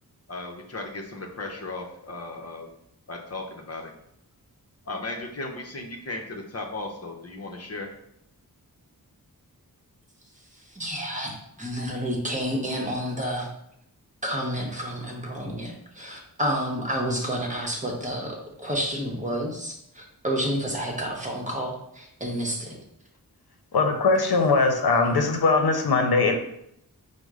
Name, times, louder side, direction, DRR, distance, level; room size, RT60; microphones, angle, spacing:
voice 1, 0.3-2.7 3.1-3.9 4.9-7.9, left 2 dB, 40° left, 1 dB, 0.7 m, -36 dB
voice 2, 10.7-13.5 14.2-22.8, equal, 20° right, -1 dB, 0.9 m, -30 dB
voice 3, 23.7-26.3, left 3 dB, 80° left, 4 dB, 0.7 m, -21 dB
5.1 x 2.1 x 4.7 m, 0.76 s
wide cardioid pair, 100°, 37 cm